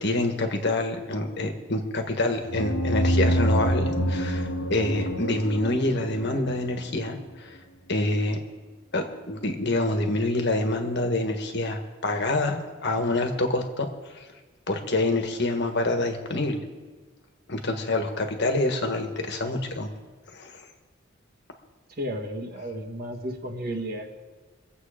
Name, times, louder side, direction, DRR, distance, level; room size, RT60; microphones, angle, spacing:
voice 1, 0.0-7.6 7.9-8.4 8.9-13.9 14.1-14.3 14.7-16.6 17.5-19.9 20.3-20.6, left 2 dB, 55° left, 5 dB, 1.5 m, -26 dB
sound 1, 2.5-7.0, equal, 85° left, 1.4 m, -26 dB
voice 2, 22.0-24.1, equal, 50° right, 2 dB, 1.6 m, -33 dB
23.0 x 8.1 x 5.1 m, 1.4 s
head